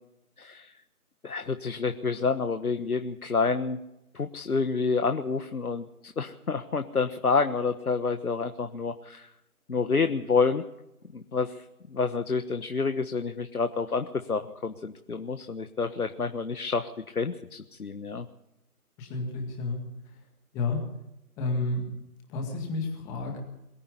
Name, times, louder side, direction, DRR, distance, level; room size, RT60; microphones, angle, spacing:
voice 1, 0.4-0.7 1.2-3.8 4.1-9.3 9.7-10.6 11.1-11.6 11.9-18.2, left 4 dB, 70° left, 8 dB, 1.5 m, -28 dB
voice 2, 19.0-19.8 20.5-20.8 21.4-21.9 22.3-23.4, left 3 dB, 5° left, 2 dB, 1.9 m, -30 dB
22.5 x 14.0 x 9.8 m, 0.91 s
figure-of-eight pair, 160°, 45 cm